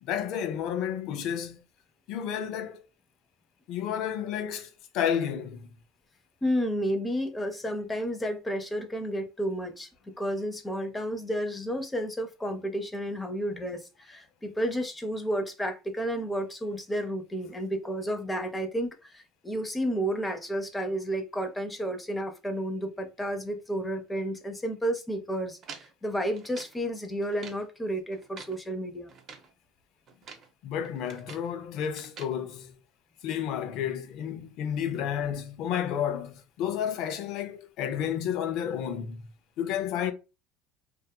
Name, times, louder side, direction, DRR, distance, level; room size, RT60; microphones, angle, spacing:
voice 1, 0.0-1.6 2.1-2.8 3.7-5.7 30.6-32.7 33.2-39.2 39.6-40.1, left 9 dB, 65° left, 0.5 m, -31 dB
voice 2, 6.4-29.1, equal, 10° left, 0.6 m, -31 dB
sound 1, 25.6-26.8 27.2-27.7 28.1-28.6 29.1-29.5 30.1-30.5 30.8-31.5 31.9-32.4, right 5 dB, 45° right, 0.7 m, -47 dB
2.6 x 2.3 x 2.3 m
supercardioid pair, 100°, 0 cm